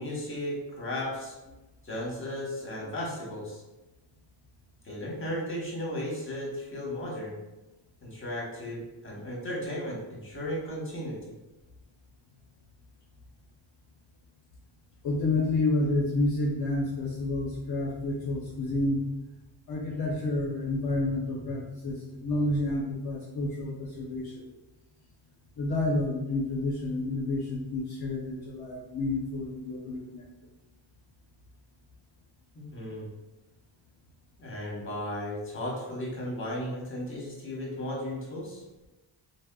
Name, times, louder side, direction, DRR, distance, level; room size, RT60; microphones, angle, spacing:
voice 1, 0.0-1.3 1.8-3.6 4.8-7.4 8.0-11.2 32.5-33.1 34.4-38.6, left 1 dB, 25° left, -3 dB, 1.0 m, -35 dB
voice 2, 15.0-19.0 19.7-24.4 25.6-30.3, left 2 dB, 50° left, -4 dB, 0.6 m, -29 dB
3.3 x 2.1 x 2.2 m, 1.1 s
cardioid pair, 85°, 47 cm